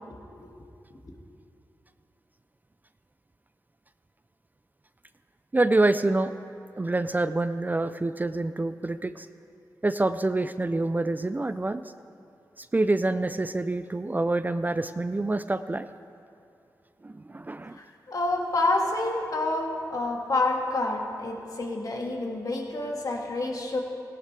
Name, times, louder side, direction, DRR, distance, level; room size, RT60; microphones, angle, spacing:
voice 1, 0.1-0.5 17.7-23.8, left 2 dB, 55° left, 0 dB, 1.9 m, -28 dB
voice 2, 5.5-6.3 6.8-9.3 9.8-11.8 12.6-15.9 17.0-17.8, right 2 dB, 25° right, 12 dB, 0.4 m, -26 dB
17.0 x 11.5 x 3.3 m, 2.5 s
cardioid pair, 50°, 8 cm